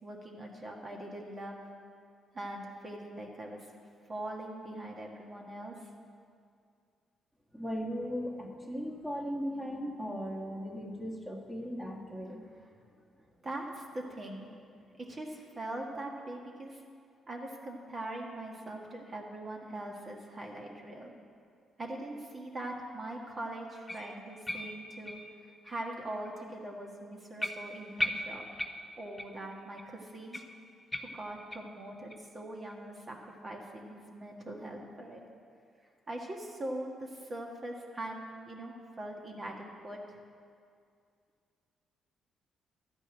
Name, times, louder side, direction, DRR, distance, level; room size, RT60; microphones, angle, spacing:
voice 1, 0.0-1.6 2.3-3.7 4.1-5.7 13.4-14.5 14.8-16.8 17.3-21.1 21.8-25.2 25.6-28.4 29.0-30.4 31.0-35.2 36.1-40.2, right 1 dB, 35° right, 0 dB, 1.5 m, -42 dB
voice 2, 7.5-12.4, equal, 5° right, -1 dB, 1.6 m, -37 dB
sound 1, 23.9-25.9 26.3-26.4 26.8-26.9 27.4-29.5 29.8-29.9 30.3-31.8 32.1-32.2 32.7-32.8 33.3-33.4, left 1 dB, 10° left, 0.7 m, -39 dB
12.0 x 5.3 x 8.9 m, 2.3 s
cardioid pair, 90°, 0 cm